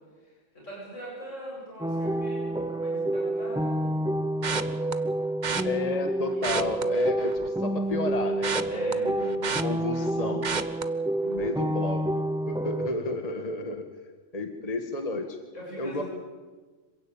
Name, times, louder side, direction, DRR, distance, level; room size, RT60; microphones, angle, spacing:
voice 1, 0.2-4.0 5.4-5.8 8.7-9.1 13.3-13.4 15.5-16.0, equal, 70° left, -4 dB, 8.2 m, -41 dB
sound 1, 1.8-12.9, right 1 dB, 5° right, 0.4 m, -28 dB
sound 2, 4.4-4.9 5.4-5.6 6.3-7.6 7.9-10.1 10.4-10.8 11.3-11.6 11.9-12.0, right 5 dB, 40° right, 1.1 m, -31 dB
voice 2, 5.6-10.5 11.2-13.9 14.3-15.4 15.8-16.0, left 2 dB, 30° left, 6 dB, 1.7 m, -32 dB
26.5 x 16.5 x 8.8 m, 1.3 s
omnidirectional pair, 1.3 m